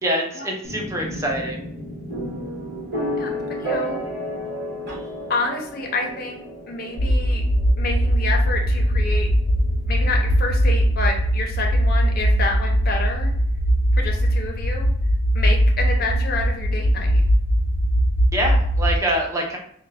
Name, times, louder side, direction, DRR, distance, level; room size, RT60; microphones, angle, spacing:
voice 1, 0.0-1.6 18.3-19.6, right 1 dB, 15° right, 0 dB, 0.5 m, -25 dB
sound 1, 0.6-14.4, equal, 50° right, 1.4 m, -33 dB
voice 2, 3.2-4.1 5.3-6.4 6.7-7.4 7.8-9.3 9.9-13.3 13.9-14.9 15.3-17.2, left 2 dB, 45° left, 1 dB, 0.6 m, -28 dB
sound 2, 7.0-19.0, equal, 85° left, 0.5 m, -20 dB
3.4 x 2.2 x 3.4 m, 0.64 s
head